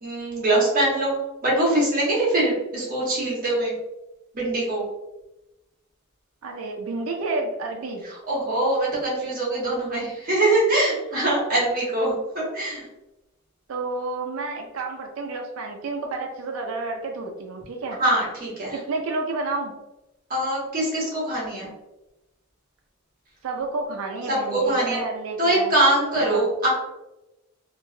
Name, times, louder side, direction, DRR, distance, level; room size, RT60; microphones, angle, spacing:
voice 1, 0.0-1.2 1.4-3.7 4.3-4.8 8.3-12.8 18.0-18.8 20.3-21.7 24.3-25.0 25.4-26.7, right 1 dB, 45° right, -5 dB, 1.2 m, -23 dB
voice 2, 6.4-8.0 13.7-18.0 18.7-19.7 23.4-25.7 26.2-26.5, right 3 dB, 85° right, 2 dB, 0.4 m, -30 dB
3.2 x 2.4 x 2.2 m, 0.97 s
head